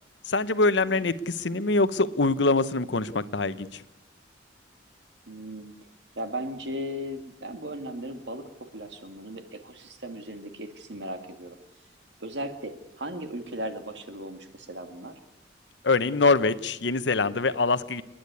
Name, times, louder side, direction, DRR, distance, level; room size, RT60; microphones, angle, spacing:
voice 1, 0.3-3.8 15.8-18.0, left 3 dB, 75° left, 14 dB, 0.9 m, -24 dB
voice 2, 5.3-5.7 6.2-11.6 12.2-15.1, equal, 70° right, 7 dB, 2.2 m, -37 dB
29.5 x 10.0 x 9.5 m, 0.95 s
head